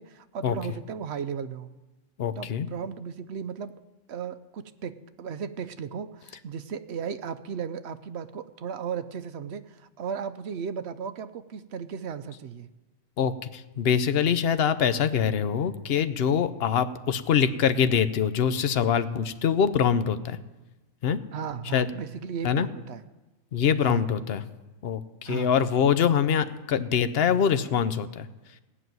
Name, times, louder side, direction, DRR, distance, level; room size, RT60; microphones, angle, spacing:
voice 1, 0.0-1.8 2.4-3.8 4.1-12.7 21.3-23.0 23.8-24.0 25.3-25.5, right 7 dB, 60° right, 11 dB, 0.8 m, -35 dB
voice 2, 2.2-2.7 13.2-20.4 21.0-21.2 21.7-21.9 22.4-22.7 23.5-24.4 24.8-28.3, left 7 dB, 55° left, 13 dB, 0.8 m, -24 dB
16.0 x 6.2 x 9.3 m, 1.1 s
omnidirectional pair, 1.4 m